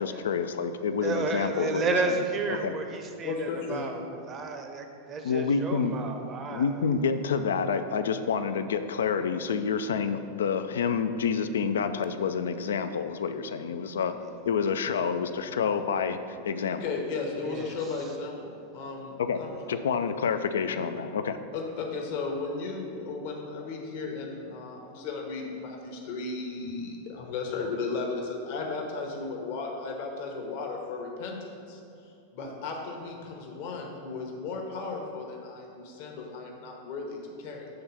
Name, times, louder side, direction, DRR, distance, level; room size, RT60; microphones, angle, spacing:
voice 1, 0.0-2.2 2.6-2.7 5.2-5.9 6.5-14.1 14.4-16.8 19.2-19.4 19.7-21.4, left 6 dB, 65° left, 10 dB, 0.3 m, -28 dB
voice 2, 1.0-6.9 14.1-14.2 17.4-17.8, right 3 dB, 25° right, 5 dB, 0.7 m, -32 dB
voice 3, 3.2-3.9 16.7-19.5 21.5-31.4 31.7-31.8 32.3-37.7, left 4 dB, 50° left, 1 dB, 0.9 m, -35 dB
7.8 x 3.8 x 5.6 m, 2.5 s
figure-of-eight pair, 90°, 0 cm